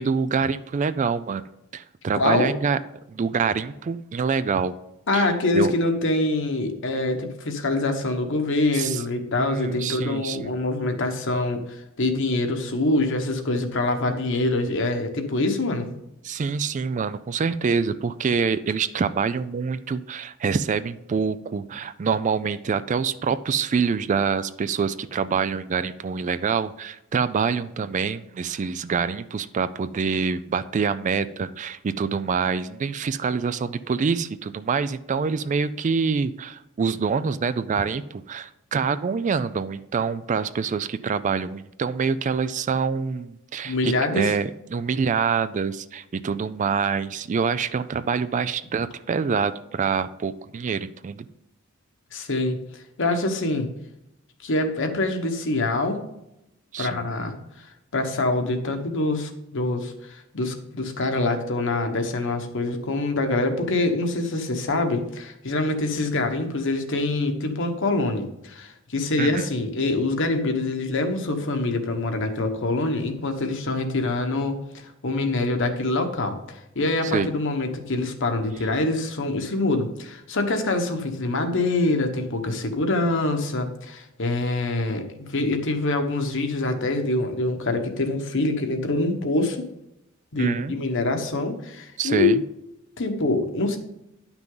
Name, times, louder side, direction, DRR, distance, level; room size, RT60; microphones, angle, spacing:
voice 1, 0.0-1.4 1.7-2.8 3.1-4.7 5.1-5.7 8.7-9.0 9.4-10.5 16.2-51.3 56.7-57.1 69.2-69.5 77.0-77.3 90.4-90.7 92.0-92.4, right 5 dB, 35° right, 14 dB, 0.3 m, -26 dB
voice 2, 2.1-2.5 5.1-15.9 43.6-44.3 52.1-53.7 54.4-56.0 56.8-89.6 90.3-92.4 93.0-93.8, left 2 dB, 60° left, 5 dB, 1.2 m, -25 dB
10.5 x 6.0 x 3.8 m, 0.85 s
head